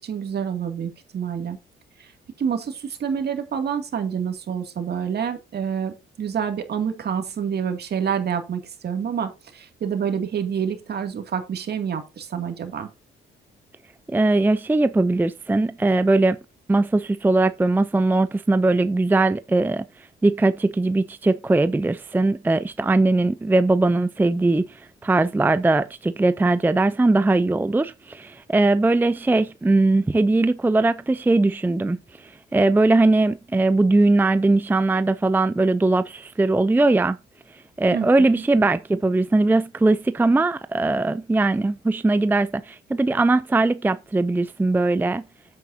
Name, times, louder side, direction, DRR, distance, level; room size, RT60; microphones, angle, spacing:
voice 1, 0.0-1.6 2.0-2.1 2.4-12.9 37.9-38.4, right 7 dB, 55° right, 2.4 m, -28 dB
voice 2, 14.1-16.4 16.7-37.2 37.5-45.2, right 2 dB, 10° right, 0.4 m, -20 dB
9.3 x 8.4 x 2.7 m
cardioid pair, 90°, 20 cm